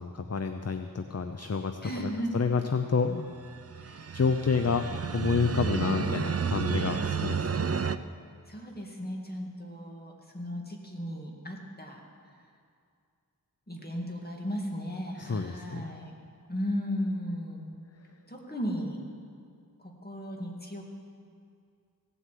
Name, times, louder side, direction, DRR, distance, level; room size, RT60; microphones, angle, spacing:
voice 1, 0.0-3.3 4.1-7.8 15.2-15.9, left 5 dB, 45° left, 7 dB, 0.6 m, -29 dB
voice 2, 1.8-2.3 3.8-4.2 5.9-7.1 8.5-12.0 13.7-16.2 16.5-17.8 18.3-19.0 19.8-20.8, equal, 25° left, 0 dB, 2.2 m, -36 dB
sound 1, 3.4-8.0, right 6 dB, 40° right, 0.5 m, -31 dB
17.0 x 8.1 x 7.6 m, 2.3 s
wide cardioid pair, 45°, 37 cm